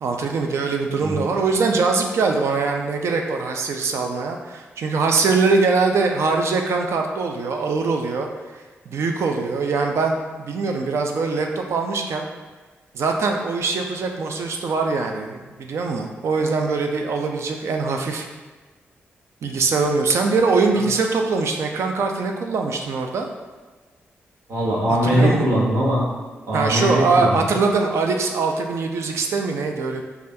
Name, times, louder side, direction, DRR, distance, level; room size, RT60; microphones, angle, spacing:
voice 1, 0.0-8.3 8.5-12.3 12.9-18.3 19.4-23.3 25.0-25.5 26.5-30.0, right 4 dB, 70° right, 3 dB, 0.3 m, -22 dB
voice 2, 24.5-26.1 26.5-27.4, equal, 90° right, -6 dB, 0.8 m, -20 dB
3.4 x 2.3 x 2.6 m, 1.3 s
supercardioid pair, 55°, 5 cm